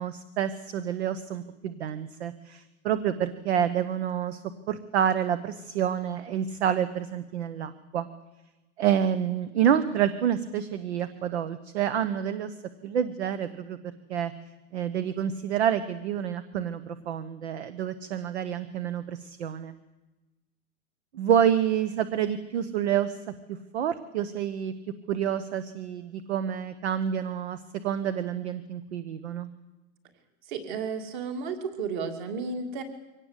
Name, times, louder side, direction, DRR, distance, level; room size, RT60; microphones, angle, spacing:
voice 1, 0.0-4.4 4.7-8.1 8.8-12.5 12.8-13.8 14.1-14.3 14.7-19.7 21.1-23.2 23.5-24.7 25.1-29.5, right 9 dB, 50° right, 13 dB, 1.2 m, -28 dB
voice 2, 30.5-32.8, right 5 dB, 35° right, 7 dB, 2.7 m, -33 dB
24.0 x 18.0 x 8.2 m, 1.1 s
supercardioid pair, 180°, 43 cm